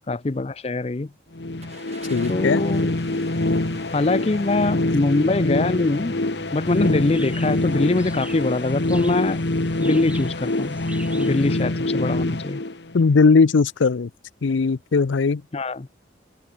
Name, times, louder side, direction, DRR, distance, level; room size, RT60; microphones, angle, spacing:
voice 1, 0.1-1.1 2.3-2.9 3.9-6.2 6.5-9.4 9.8-12.6 15.5-15.9, left 2 dB, 30° left, 0.5 m, -23 dB
sound 1, 1.3-13.3, left 2 dB, 65° left, 1.3 m, -25 dB
Car / Engine starting, 1.6-8.5, right 2 dB, 35° right, 5.9 m, -44 dB
voice 2, 2.1-2.6 12.9-14.1 14.4-15.4, left 4 dB, 85° left, 0.5 m, -18 dB
sound 2, 6.7-11.6, right 1 dB, 5° right, 6.1 m, -43 dB
head